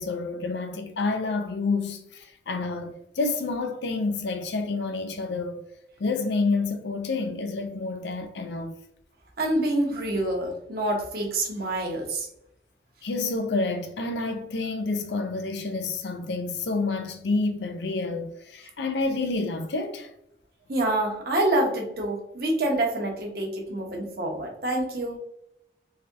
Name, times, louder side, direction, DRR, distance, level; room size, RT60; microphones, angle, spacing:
voice 1, 0.0-5.6 6.0-8.7 13.0-20.1, left 3 dB, 85° left, 0.5 m, -29 dB
voice 2, 9.4-12.3 20.7-25.2, right 1 dB, 60° right, 0.9 m, -27 dB
4.1 x 2.7 x 2.5 m
head